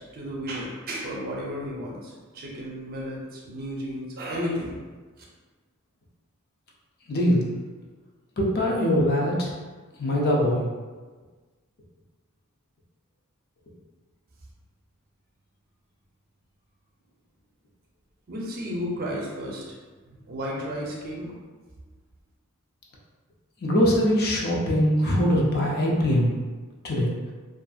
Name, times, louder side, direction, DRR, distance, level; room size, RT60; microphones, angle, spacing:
voice 1, 0.0-4.8 18.3-19.6 20.1-21.3, equal, 45° right, -3 dB, 0.6 m, -33 dB
voice 2, 7.1-7.5 8.4-9.5 10.0-10.7 23.6-26.3 26.8-27.1, equal, 45° left, -3 dB, 0.5 m, -22 dB
2.6 x 2.5 x 2.3 m, 1.4 s
head